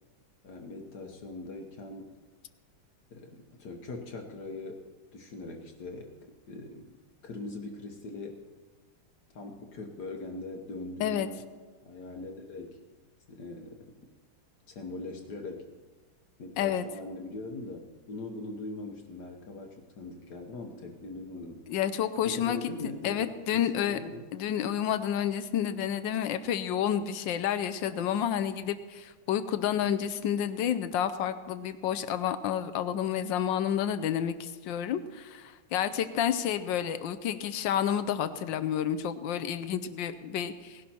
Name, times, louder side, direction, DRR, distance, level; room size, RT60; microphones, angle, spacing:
voice 1, 0.4-2.2 3.1-4.8 5.1-7.0 7.2-8.4 9.3-11.4 11.8-12.8 13.3-14.0 14.7-15.7 16.4-21.6 22.2-24.3, left 2 dB, 55° left, 3 dB, 1.6 m, -41 dB
voice 2, 21.7-22.6 23.0-24.0 24.3-40.8, left 9 dB, 70° left, 11 dB, 1.2 m, -30 dB
18.5 x 11.5 x 4.4 m, 1.3 s
omnidirectional pair, 2.4 m